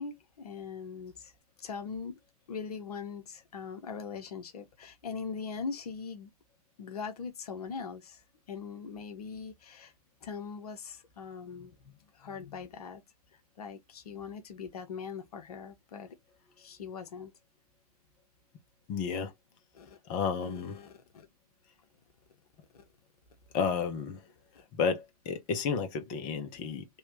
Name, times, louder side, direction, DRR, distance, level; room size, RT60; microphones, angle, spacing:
voice 1, 0.0-1.3 1.6-2.1 2.5-6.3 6.8-8.2 8.5-9.9 10.2-13.0 13.6-16.2 16.6-17.3 19.7-20.2 20.4-21.3 22.7-22.8, left 5 dB, 75° left, 1.1 m, -41 dB
voice 2, 18.9-19.3 20.1-20.9 23.5-24.2 24.7-27.0, left 6 dB, 40° left, 1.2 m, -32 dB
3.4 x 3.1 x 2.9 m
hypercardioid pair, 105°, 20 cm